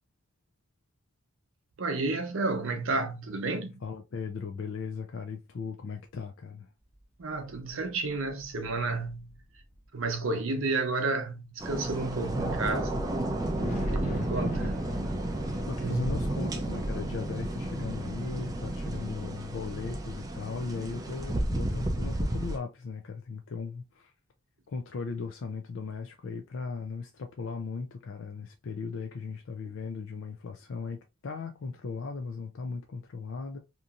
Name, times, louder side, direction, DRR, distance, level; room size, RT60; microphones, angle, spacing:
voice 1, 1.8-3.8 7.2-9.4 9.9-12.9 13.9-14.7 15.8-16.2, right 3 dB, 70° right, 0.7 m, -31 dB
voice 2, 3.8-6.7 13.6-14.9 15.6-24.1 24.7-33.6, left 4 dB, 65° left, 0.4 m, -37 dB
sound 1, 6.8-11.0 11.5-11.6 12.5-12.6 13.0-13.1 13.4-17.8, equal, 35° left, 0.8 m, -51 dB
sound 2, 11.6-22.6, right 1 dB, 15° right, 0.4 m, -32 dB
2.9 x 2.6 x 2.4 m
head